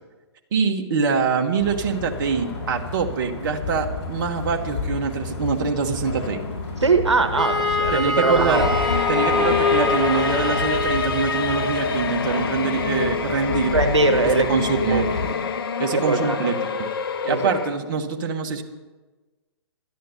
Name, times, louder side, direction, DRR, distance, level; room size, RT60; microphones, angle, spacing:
voice 1, 0.5-6.4 7.9-8.6 9.1-13.7 14.5-15.0 15.8-16.9 17.2-18.6, right 5 dB, 45° right, 3 dB, 1.4 m, -24 dB
sound 1, 1.6-15.3, left 3 dB, 35° left, 4.7 m, -32 dB
voice 2, 6.8-8.7 13.7-14.5 14.9-15.1 16.0-16.5 17.3-17.5, right 3 dB, 80° right, 7 dB, 1.2 m, -21 dB
Wind instrument woodwind instrument, 7.4-11.8, left 2 dB, ahead, 2.3 m, -24 dB
sound 2, 8.5-17.7, left 6 dB, 55° left, 1.0 m, -26 dB
12.5 x 10.0 x 7.0 m, 1.2 s
figure-of-eight pair, 125°, 15 cm